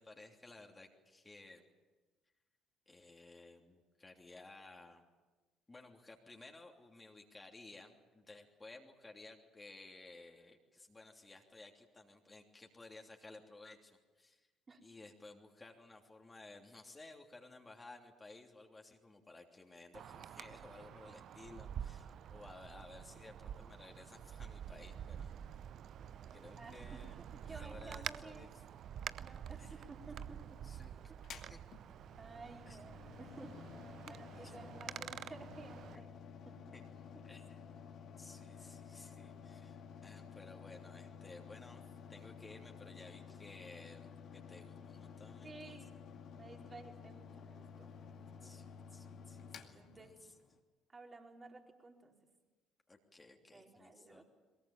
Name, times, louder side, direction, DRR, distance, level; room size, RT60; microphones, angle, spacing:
voice 1, 0.0-1.6 2.9-5.0 5.7-14.5 14.8-25.3 26.3-27.2 27.4-28.6 29.6-29.8 30.6-31.1 31.5-31.6 32.7-32.8 34.1-34.6 35.9-36.0 36.7-36.8 37.2-37.6 38.2-45.8 48.4-50.3 52.9-54.2, left 2 dB, 20° left, 1 dB, 3.1 m, -56 dB
Wind, 19.9-36.0, right 9 dB, 55° right, 0.7 m, -48 dB
voice 2, 26.6-28.5 29.2-30.6 32.2-36.2 36.4-36.7 45.4-45.9 46.3-48.6 49.7-50.2 50.9-52.1 53.5-54.2, right 3 dB, 30° right, 2 dB, 4.7 m, -54 dB
Mechanical fan, 31.2-50.6, left 6 dB, 55° left, 2.3 m, -53 dB
22.5 x 22.0 x 8.9 m, 1.2 s
hypercardioid pair, 55°, 0 cm